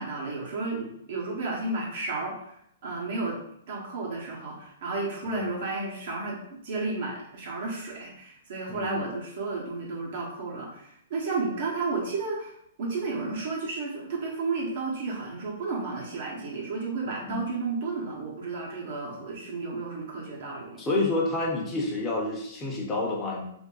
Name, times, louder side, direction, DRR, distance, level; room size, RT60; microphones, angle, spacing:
voice 1, 0.0-3.4 3.7-21.0, right 3 dB, 60° right, -4 dB, 1.0 m, -32 dB
voice 2, 8.7-9.0 17.3-17.5 20.8-23.5, left 2 dB, 15° left, -3 dB, 0.8 m, -29 dB
2.5 x 2.1 x 3.8 m, 0.73 s
hypercardioid pair, 135°, 0 cm